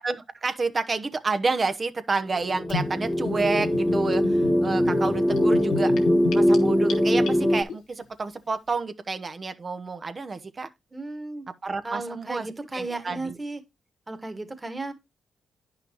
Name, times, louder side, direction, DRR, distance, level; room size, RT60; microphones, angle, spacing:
voice 1, 0.0-5.9 6.3-10.7 11.6-12.5 12.7-13.4, right 4 dB, 40° right, 1.0 m, -29 dB
sound 1, 2.3-7.6, equal, 20° left, 1.4 m, -22 dB
Gurgling / Bathtub (filling or washing), 2.7-7.7, left 4 dB, 85° left, 1.3 m, -33 dB
voice 2, 10.9-11.5 11.8-13.6 14.1-14.9, right 2 dB, 20° right, 1.7 m, -34 dB
9.4 x 5.8 x 3.0 m
supercardioid pair, 55°, 0 cm